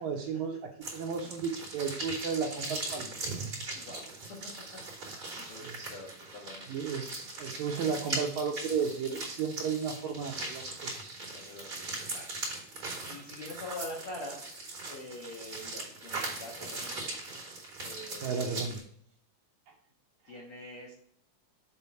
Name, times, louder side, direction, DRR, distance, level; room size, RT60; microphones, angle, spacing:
voice 1, 0.0-3.1 5.6-5.9 6.7-11.1 18.2-18.8, right 6 dB, 75° right, 2 dB, 1.8 m, -34 dB
sound 1, 0.8-18.8, right 2 dB, 30° right, 3.3 m, -40 dB
voice 2, 3.7-4.1 4.7-4.8 5.4-7.0 11.2-12.2 12.7-14.4 14.9-17.1 17.8-18.5 20.2-20.9, left 1 dB, 60° left, -3 dB, 1.5 m, -45 dB
7.1 x 3.8 x 5.5 m, 0.64 s
omnidirectional pair, 4.0 m